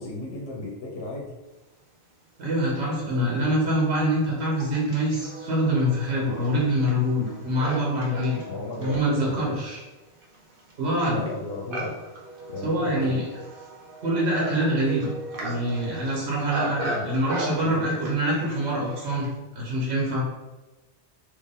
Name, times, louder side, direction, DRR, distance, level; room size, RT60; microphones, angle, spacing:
voice 1, 0.0-1.3 8.4-9.6 11.1-11.9 12.5-13.2 16.9-17.1 17.6-18.0, left 2 dB, 70° left, -1 dB, 0.9 m, -35 dB
voice 2, 2.4-8.4 8.8-9.8 10.8-11.2 12.6-13.3 14.0-15.1 15.4-19.3 19.5-20.3, equal, 90° right, -4 dB, 1.3 m, -25 dB
Livestock farm animals working animals, 2.6-2.7 3.4-19.4, right 1 dB, 60° right, 1.0 m, -37 dB
4.2 x 2.8 x 3.6 m, 1.1 s
omnidirectional pair, 1.1 m